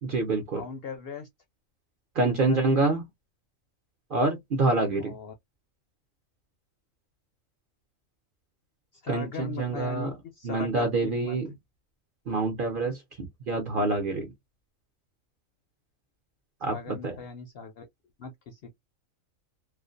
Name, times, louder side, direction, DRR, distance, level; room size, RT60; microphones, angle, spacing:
voice 1, 0.0-0.6 2.2-3.0 4.1-5.2 9.1-10.1 10.4-11.5 12.3-14.3 16.6-16.7 17.0-17.2, right 3 dB, 55° right, 0.6 m, -26 dB
voice 2, 0.5-1.3 2.2-3.0 5.0-5.3 8.9-11.4 16.7-17.9 18.2-18.7, left 5 dB, 65° left, 0.6 m, -39 dB
2.4 x 2.1 x 2.4 m
omnidirectional pair, 1.4 m